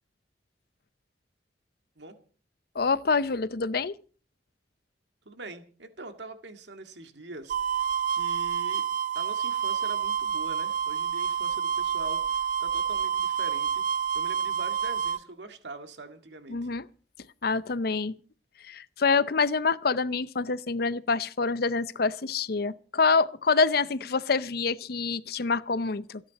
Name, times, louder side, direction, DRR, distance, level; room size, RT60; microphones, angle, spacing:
voice 1, 2.7-4.0 16.5-16.8 17.4-18.2 18.6-26.2, left 4 dB, 60° left, 0.7 m, -26 dB
voice 2, 5.3-7.6 8.1-8.9 9.2-16.7, right 2 dB, 80° right, 2.0 m, -43 dB
sound 1, 7.5-15.2, right 7 dB, 50° right, 0.6 m, -28 dB
28.5 x 10.0 x 4.2 m
head